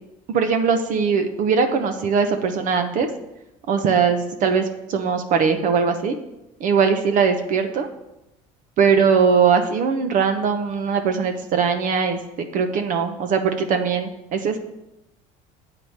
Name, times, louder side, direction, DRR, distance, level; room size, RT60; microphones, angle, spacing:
voice 1, 0.3-3.1 3.7-6.1 6.6-7.9 8.8-12.2 12.5-14.6, right 6 dB, 55° right, 6 dB, 0.9 m, -20 dB
8.0 x 4.9 x 7.2 m, 0.91 s
supercardioid pair, 105°, 16 cm